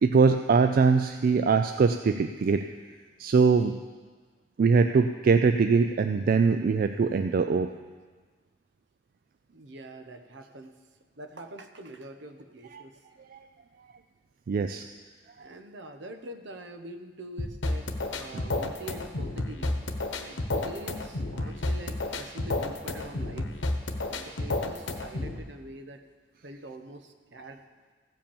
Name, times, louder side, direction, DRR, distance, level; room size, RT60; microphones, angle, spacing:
voice 1, 0.0-2.6 3.2-3.8 4.6-7.7 12.7-12.8 13.3-13.4 14.5-14.9, right 5 dB, 50° right, 8 dB, 0.3 m, -22 dB
voice 2, 9.5-10.8 11.2-13.0 15.4-19.7 20.2-23.5 24.0-26.0 26.4-27.6, right 1 dB, 70° right, 7 dB, 0.9 m, -44 dB
sound 1, 17.4-25.4, left 2 dB, 90° left, 1.0 m, -31 dB
15.5 x 5.2 x 7.0 m, 1.5 s
head